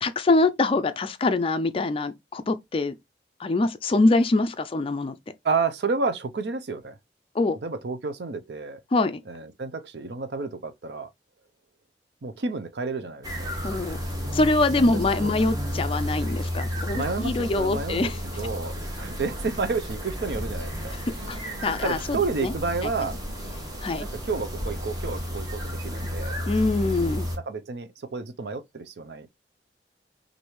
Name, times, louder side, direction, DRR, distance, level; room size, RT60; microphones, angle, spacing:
voice 1, 0.0-2.9 3.4-5.2 7.3-7.6 8.9-9.2 13.6-14.0 14.3-18.2 21.3-22.5 22.8-22.9 23.8-24.1 26.5-27.3, left 2 dB, 30° left, 0.4 m, -24 dB
voice 2, 5.4-7.0 7.6-8.8 9.3-11.1 12.2-13.5 14.7-15.3 16.9-18.1 18.4-23.2 24.0-26.4 27.5-29.3, right 4 dB, 65° right, 0.6 m, -31 dB
sound 1, 13.2-27.4, equal, 20° right, 1.2 m, -32 dB
6.3 x 2.6 x 3.1 m
head